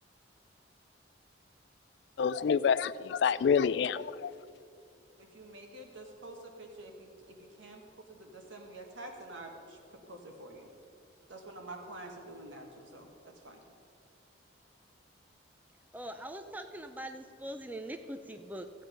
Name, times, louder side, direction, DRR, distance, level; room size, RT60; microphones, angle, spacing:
voice 1, 2.2-4.3, left 6 dB, 65° left, 17 dB, 0.3 m, -27 dB
voice 2, 5.2-7.1 7.4-7.8 8.1-10.7 11.3-13.1 13.4-13.6, right 2 dB, 80° right, 2 dB, 1.7 m, -47 dB
voice 3, 15.9-18.9, right 1 dB, 10° right, 7 dB, 0.4 m, -42 dB
14.0 x 8.5 x 5.2 m, 2.4 s
head